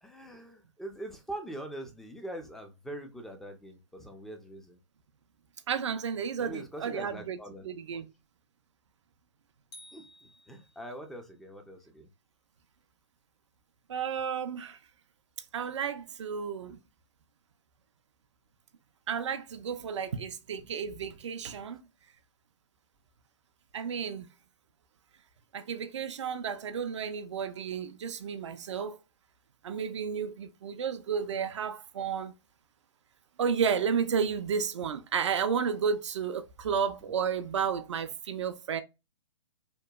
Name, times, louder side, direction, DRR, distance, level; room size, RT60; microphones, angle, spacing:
voice 1, 0.0-4.8 6.4-7.7 9.9-10.0 10.5-12.1 31.3-31.5, right 1 dB, ahead, 0.4 m, -43 dB
voice 2, 5.7-7.4 7.6-8.1 13.9-14.8 15.5-16.8 19.1-21.8 23.7-24.3 25.5-29.0 29.6-32.3 33.4-38.8, right 6 dB, 70° right, 0.4 m, -32 dB
sound 1, 9.7-11.1, left 1 dB, 60° left, 1.2 m, -54 dB
2.9 x 2.1 x 2.2 m
hypercardioid pair, 125°, 16 cm